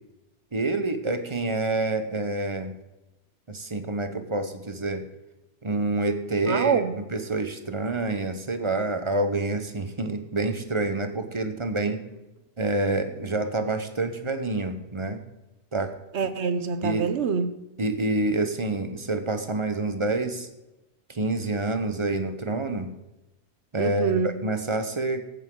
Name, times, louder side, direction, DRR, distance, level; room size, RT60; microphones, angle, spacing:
voice 1, 0.5-2.7 3.5-5.0 5.6-12.0 12.6-15.2 15.7-15.9 16.8-17.0 17.8-20.5 21.1-22.9 23.7-25.2, right 2 dB, 30° right, 8 dB, 0.9 m, -27 dB
voice 2, 6.5-6.9 11.8-11.9 16.1-17.5 23.8-24.3, right 6 dB, 75° right, 12 dB, 1.1 m, -25 dB
15.0 x 9.0 x 3.8 m, 0.98 s
omnidirectional pair, 1.2 m